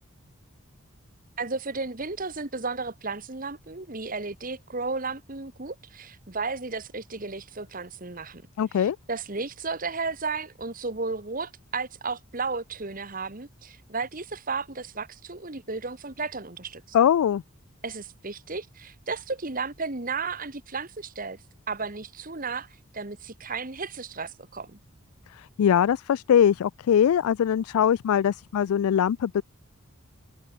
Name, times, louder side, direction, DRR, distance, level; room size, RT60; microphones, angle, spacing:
voice 1, 1.4-8.4 8.7-17.0 17.8-21.4 21.7-22.7 22.9-24.8, right 4 dB, 40° right, 1.6 m, -34 dB
voice 2, 8.6-9.0 16.9-17.4 25.4-29.4, left 9 dB, 80° left, 0.3 m, -22 dB
head